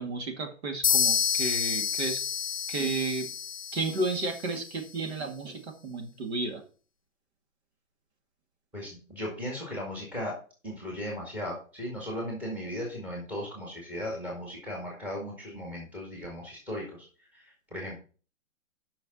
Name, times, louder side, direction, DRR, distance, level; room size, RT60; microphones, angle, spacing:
voice 1, 0.0-2.2 2.7-3.3 3.7-6.6, right 3 dB, 50° right, 4 dB, 2.2 m, -32 dB
sound 1, 0.8-4.6, left 8 dB, 45° left, 0.4 m, -29 dB
voice 2, 8.7-10.4 10.6-17.1 17.3-18.0, equal, 5° right, -2 dB, 1.9 m, -37 dB
6.8 x 6.0 x 6.8 m, 0.38 s
hypercardioid pair, 165°, 42 cm